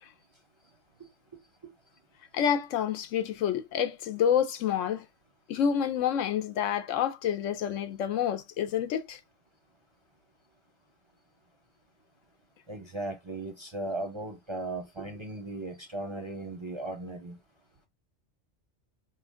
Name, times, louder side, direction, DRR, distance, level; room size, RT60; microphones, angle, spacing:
voice 1, 2.3-5.1 5.5-9.2, left 8 dB, 85° left, 1.0 m, -28 dB
voice 2, 12.7-17.4, right 2 dB, 35° right, 0.5 m, -37 dB
4.4 x 2.5 x 3.5 m
omnidirectional pair, 1.3 m